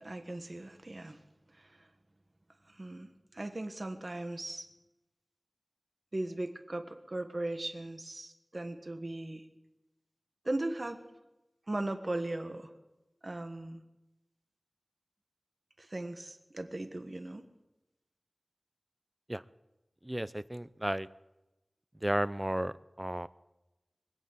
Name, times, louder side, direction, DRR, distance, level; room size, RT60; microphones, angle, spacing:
voice 1, 0.0-1.9 2.6-4.7 6.1-9.5 10.4-11.0 11.7-12.7 13.2-13.8 15.8-17.5, right 2 dB, 45° right, 7 dB, 1.3 m, -38 dB
voice 2, 20.0-21.1 22.0-23.3, right 1 dB, 15° right, 17 dB, 0.5 m, -33 dB
23.0 x 8.5 x 7.4 m, 1.0 s
wide cardioid pair, 60°, 0 cm